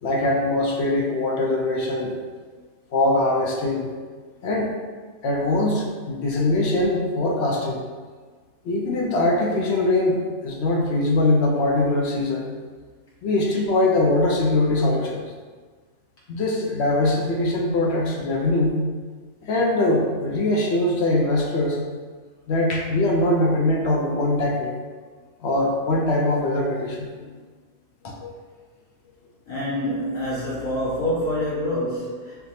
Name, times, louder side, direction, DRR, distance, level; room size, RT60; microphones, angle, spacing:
voice 1, 0.0-2.1 2.9-3.9 4.4-4.7 5.2-7.8 8.6-10.2 10.4-12.5 13.2-15.2 16.3-18.8 19.4-21.8 22.5-24.8 25.4-27.1 28.0-28.3, left 2 dB, 60° left, -2 dB, 0.8 m, -22 dB
voice 2, 29.5-32.4, left 1 dB, 90° left, -9 dB, 1.8 m, -26 dB
5.6 x 2.1 x 2.7 m, 1.5 s
omnidirectional pair, 1.4 m